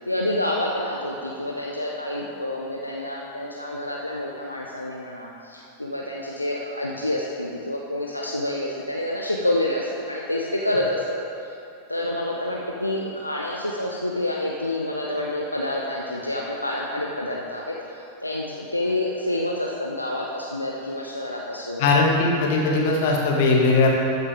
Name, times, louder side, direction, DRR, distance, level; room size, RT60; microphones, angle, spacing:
voice 1, 0.1-11.5 11.9-21.9, left 1 dB, 85° left, -2 dB, 0.6 m, -28 dB
voice 2, 21.8-23.9, left 3 dB, 50° left, -2 dB, 1.8 m, -19 dB
13.5 x 6.5 x 3.4 m, 2.7 s
figure-of-eight pair, 90°, 0 cm